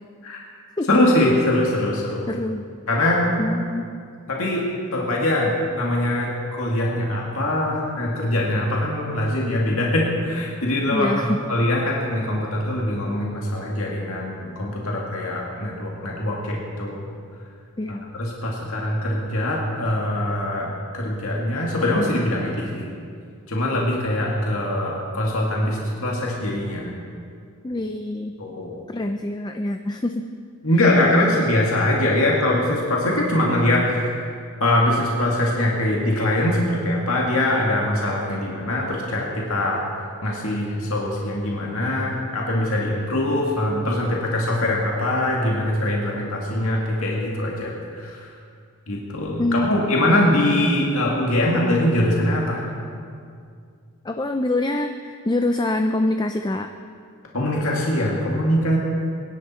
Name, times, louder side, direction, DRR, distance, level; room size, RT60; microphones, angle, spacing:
voice 1, 0.9-2.2 2.9-3.2 4.3-17.1 18.1-20.7 20.9-22.9 23.5-26.9 28.4-28.8 30.6-34.3 34.6-39.8 40.2-48.3 48.9-52.6 57.3-58.8, left 1 dB, 70° left, -2 dB, 2.2 m, -22 dB
voice 2, 2.3-2.6 3.4-3.9 10.9-11.4 17.8-18.0 27.6-28.3 28.9-30.2 49.4-49.8 54.0-56.7, left 1 dB, 20° left, 6 dB, 0.4 m, -25 dB
23.5 x 11.0 x 4.4 m, 2.3 s
head